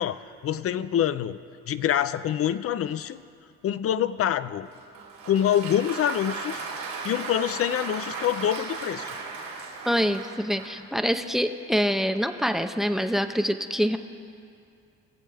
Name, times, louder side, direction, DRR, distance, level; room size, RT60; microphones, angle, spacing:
voice 1, 0.0-1.4 1.7-3.2 3.6-4.7 5.3-6.6 7.0-9.1, left 10 dB, 50° left, 15 dB, 0.5 m, -26 dB
Applause, 4.7-10.9, right 4 dB, 85° right, 2.8 m, -36 dB
voice 2, 9.8-14.0, equal, ahead, 9 dB, 0.5 m, -25 dB
22.5 x 7.7 x 3.4 m, 2.4 s
cardioid pair, 90°, 30 cm